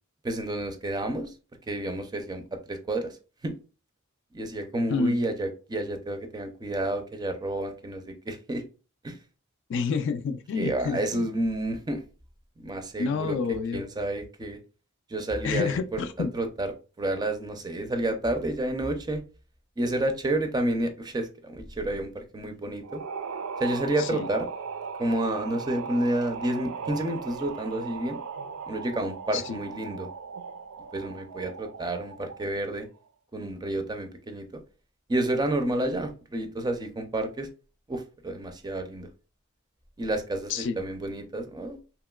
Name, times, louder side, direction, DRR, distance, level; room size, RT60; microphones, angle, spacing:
voice 1, 0.2-1.3 1.7-2.4 2.7-3.2 3.4-3.6 4.3-8.6 9.0-9.2 10.6-12.0 12.6-14.6 15.1-16.0 16.3-19.2 19.8-23.0 23.6-24.5 25.0-28.2 28.7-30.1 30.9-32.9 33.3-34.6 35.1-37.5 37.9-39.1 40.0-41.8, right 1 dB, 20° right, 0.4 m, -30 dB
voice 2, 9.7-11.3 13.0-13.8 15.4-16.3 24.0-24.3 29.3-29.6 40.5-40.9, left 5 dB, 60° left, 0.3 m, -29 dB
sound 1, 22.8-32.6, right 5 dB, 80° right, 0.4 m, -38 dB
2.9 x 2.9 x 2.2 m
head